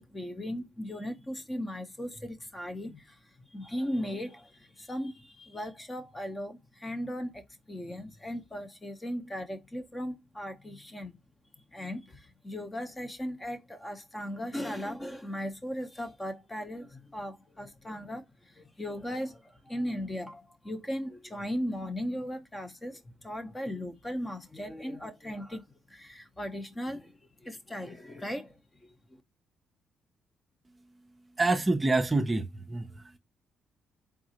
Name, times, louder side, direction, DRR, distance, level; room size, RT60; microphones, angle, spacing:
voice 1, 0.0-11.1 11.7-29.2, equal, 15° left, 0.8 m, -38 dB
voice 2, 31.4-33.2, right 2 dB, 20° right, 0.6 m, -27 dB
3.9 x 3.6 x 2.8 m
cardioid pair, 90°, 0 cm